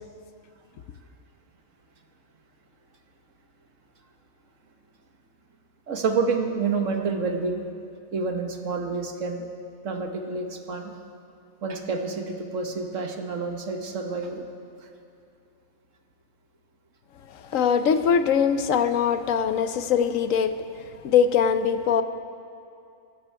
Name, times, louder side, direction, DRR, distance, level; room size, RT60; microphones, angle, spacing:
voice 1, 5.9-7.6 8.1-9.5 9.8-10.9 11.6-14.4 14.8-14.9, right 4 dB, 65° right, 4 dB, 1.6 m, -28 dB
voice 2, 17.3-20.5 21.0-22.0, left 7 dB, 75° left, 10 dB, 1.1 m, -22 dB
23.5 x 12.0 x 4.7 m, 2.5 s
omnidirectional pair, 1.4 m